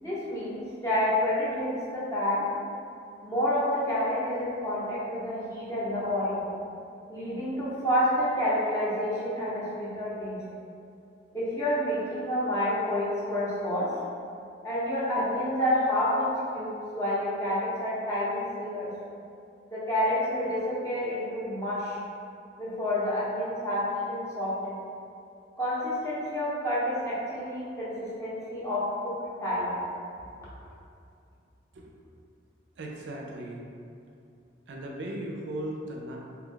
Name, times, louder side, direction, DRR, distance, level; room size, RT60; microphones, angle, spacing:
voice 1, 0.0-2.5 3.2-6.4 7.1-10.4 11.3-13.9 14.6-18.9 19.7-22.0 22.6-24.8 25.6-29.1 29.4-29.8, left 1 dB, 15° left, -9 dB, 0.7 m, -29 dB
voice 2, 32.8-33.7 34.7-36.2, right 1 dB, 65° right, -1 dB, 0.4 m, -37 dB
2.8 x 2.3 x 3.7 m, 2.6 s
head